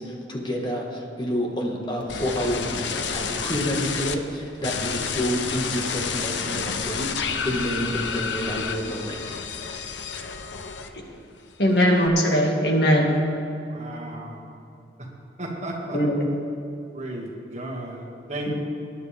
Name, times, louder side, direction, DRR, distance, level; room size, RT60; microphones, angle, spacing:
voice 1, 0.0-9.2, equal, 25° left, 0 dB, 1.6 m, -29 dB
sound 1, 2.1-4.2 4.6-11.2 11.5-12.1, left 6 dB, 85° left, 0.8 m, -30 dB
voice 2, 11.6-13.1 15.9-16.3 18.5-18.6, equal, 65° left, 0 dB, 1.9 m, -20 dB
voice 3, 13.7-14.4 15.4-16.0 16.9-18.0 18.3-18.5, right 1 dB, 40° right, -2 dB, 2.0 m, -34 dB
20.5 x 10.5 x 3.5 m, 2.7 s
head